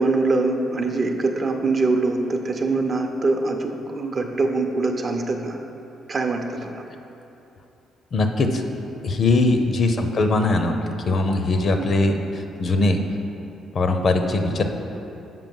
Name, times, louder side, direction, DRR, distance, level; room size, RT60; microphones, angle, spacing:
voice 1, 0.0-5.6 6.1-6.8 11.8-11.9, right 3 dB, 35° right, 3 dB, 0.6 m, -23 dB
voice 2, 8.1-8.6 9.0-10.7 11.1-13.0 13.7-14.6, left 2 dB, 45° left, 5 dB, 0.6 m, -21 dB
7.4 x 5.3 x 5.4 m, 2.9 s
cardioid pair, 125°, 0 cm